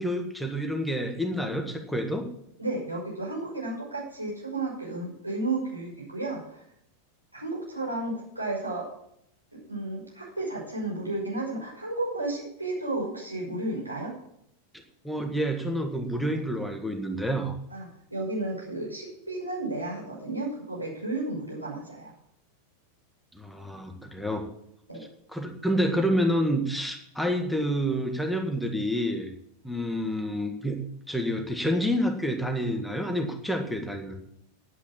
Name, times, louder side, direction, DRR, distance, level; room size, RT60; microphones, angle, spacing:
voice 1, 0.0-2.3 15.0-17.6 23.3-24.5 25.3-29.3 29.6-34.1, equal, ahead, 3 dB, 1.7 m, -28 dB
voice 2, 2.6-6.6 7.3-8.9 9.5-14.2 17.7-17.9 18.1-22.1 24.9-25.0, right 2 dB, 85° right, -3 dB, 5.8 m, -33 dB
9.8 x 9.3 x 7.2 m, 0.73 s
figure-of-eight pair, 90°, 0 cm